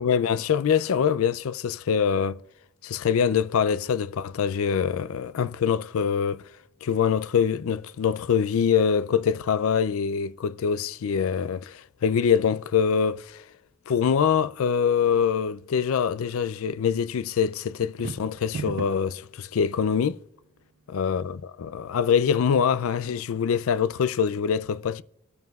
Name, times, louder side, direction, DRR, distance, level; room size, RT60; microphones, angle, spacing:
voice 1, 0.0-2.4 2.8-6.4 6.8-13.4 13.9-20.2 20.9-25.0, left 7 dB, 70° left, 0.4 m, -24 dB
sound 1, 17.8-19.2, right 5 dB, 50° right, 0.3 m, -35 dB
25.0 x 9.1 x 2.3 m
head